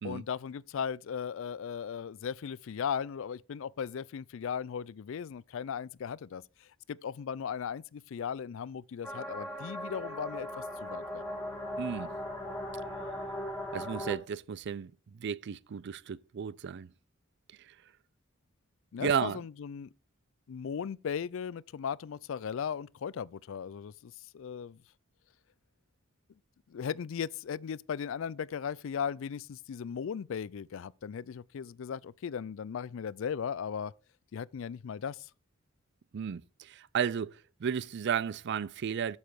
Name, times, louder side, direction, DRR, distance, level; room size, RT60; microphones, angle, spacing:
voice 1, 0.0-11.2 18.9-19.9 20.5-24.8 26.7-33.9 34.3-35.3, left 7 dB, 70° left, 0.4 m, -37 dB
sound 1, 9.0-14.2, left 1 dB, 5° left, 2.8 m, -38 dB
voice 2, 11.8-12.1 13.7-14.9 15.2-16.9 19.0-19.4 36.1-39.2, right 7 dB, 55° right, 0.4 m, -33 dB
8.8 x 7.2 x 4.7 m
head